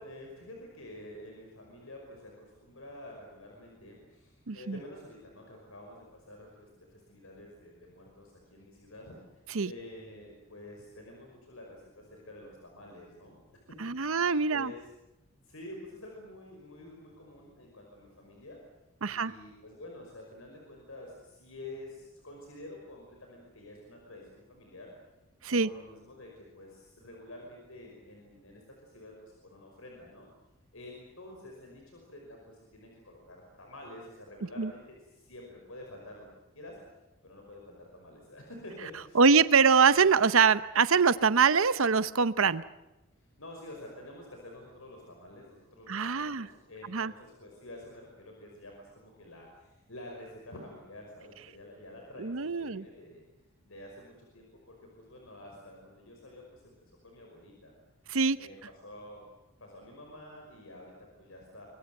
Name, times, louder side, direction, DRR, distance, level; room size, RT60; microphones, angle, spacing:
voice 1, 0.0-13.5 14.0-14.9 15.4-18.6 19.1-24.9 25.5-30.3 30.7-36.3 36.5-36.8 37.2-39.2 43.2-53.2 53.6-56.8 57.0-57.7 58.4-58.6 58.8-59.3 59.6-61.7, left 1 dB, 80° left, 1 dB, 5.5 m, -49 dB
voice 2, 4.5-4.8 9.5-9.7 13.8-14.7 19.0-19.3 25.4-25.7 34.6-34.7 39.1-42.6 45.9-46.5 46.9-47.1 52.2-52.8 58.1-58.4, right 5 dB, 75° right, 15 dB, 0.8 m, -24 dB
25.0 x 22.5 x 7.9 m, 1.0 s
head